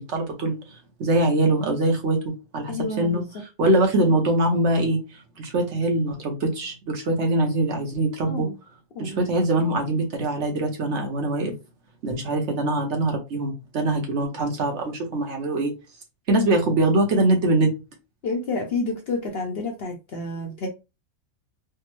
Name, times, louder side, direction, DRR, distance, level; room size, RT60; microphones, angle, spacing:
voice 1, 0.0-8.5 9.0-11.5 12.0-15.7 16.3-17.7, right 2 dB, 60° right, 1.0 m, -23 dB
voice 2, 2.7-3.2 8.2-8.5 9.0-9.2 18.2-20.7, left 3 dB, 60° left, 0.7 m, -29 dB
3.4 x 2.0 x 2.9 m
omnidirectional pair, 1.5 m